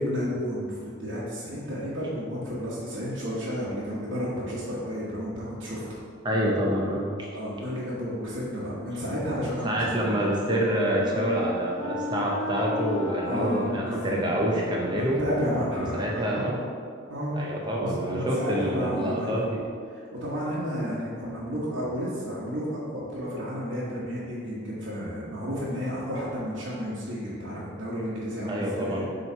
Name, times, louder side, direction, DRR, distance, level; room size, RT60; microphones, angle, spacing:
voice 1, 0.0-6.0 7.3-9.9 13.3-14.1 14.6-14.7 15.0-16.4 17.1-17.4 17.8-19.5 19.9-29.0, equal, 65° right, -10 dB, 1.1 m, -32 dB
voice 2, 6.2-7.3 9.6-15.2 15.8-16.6 17.4-19.6 28.5-29.1, equal, 20° right, -3 dB, 0.8 m, -27 dB
Wind instrument woodwind instrument, 9.5-15.6, left 2 dB, 15° left, 0.9 m, -35 dB
7.1 x 3.1 x 4.4 m, 2.2 s
head